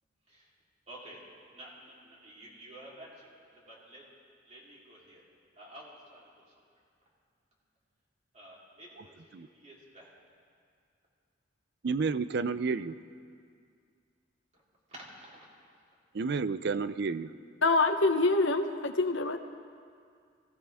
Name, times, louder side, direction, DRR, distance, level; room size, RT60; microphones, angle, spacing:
voice 1, 0.9-1.2 1.5-4.0 4.5-5.2 5.6-6.4 8.3-10.1 14.9-15.5, right 1 dB, 35° right, -5 dB, 3.5 m, -51 dB
voice 2, 11.8-13.0 16.1-17.3, right 4 dB, 55° right, 14 dB, 0.4 m, -30 dB
voice 3, 17.6-19.4, left 3 dB, 70° left, 7 dB, 0.9 m, -25 dB
23.0 x 16.5 x 3.5 m, 2.2 s
head